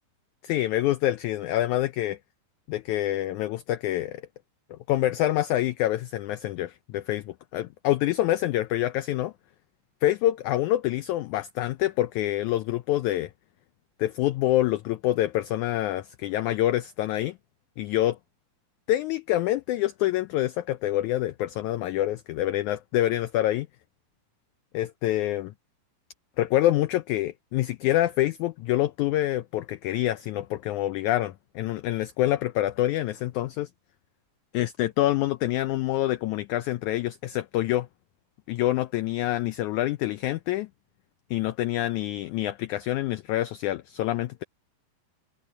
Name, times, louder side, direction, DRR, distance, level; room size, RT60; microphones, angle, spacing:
voice 1, 0.5-2.2 2.7-4.2 4.7-9.3 10.0-13.3 14.0-17.4 17.8-18.2 18.9-23.7 24.7-25.5 26.4-33.7 34.5-37.9 38.5-40.7 41.3-44.4, left 14 dB, 90° left, 1.7 m, -26 dB
omnidirectional pair, 4.1 m